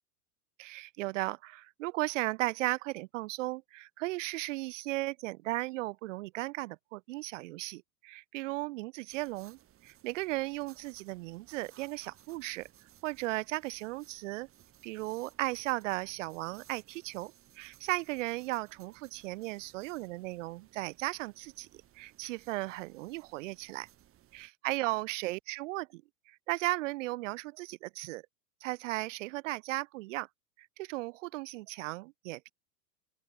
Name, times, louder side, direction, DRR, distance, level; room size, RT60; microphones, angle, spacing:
voice 1, 0.6-12.7 13.0-14.5 14.8-23.9 24.3-28.2 28.6-30.3 30.6-32.5, right 20 dB, 55° right, 1.4 m, -36 dB
sound 1, 9.1-24.5, right 12 dB, 30° right, 4.2 m, -61 dB
open air
hypercardioid pair, 115°, 45 cm